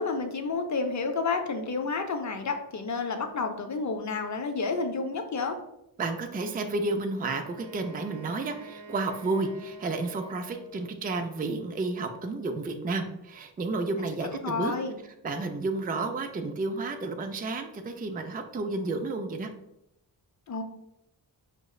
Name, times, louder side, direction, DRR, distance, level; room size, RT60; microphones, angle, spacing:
voice 1, 0.0-5.6 13.9-15.0 20.5-20.6, left 4 dB, 40° left, 6 dB, 0.6 m, -30 dB
voice 2, 6.0-14.7 15.2-19.5, right 3 dB, 20° right, 5 dB, 0.4 m, -31 dB
Wind instrument woodwind instrument, 7.4-11.1, right 3 dB, 65° right, 0.9 m, -48 dB
5.0 x 2.0 x 2.3 m, 0.84 s
cardioid pair, 45°, 46 cm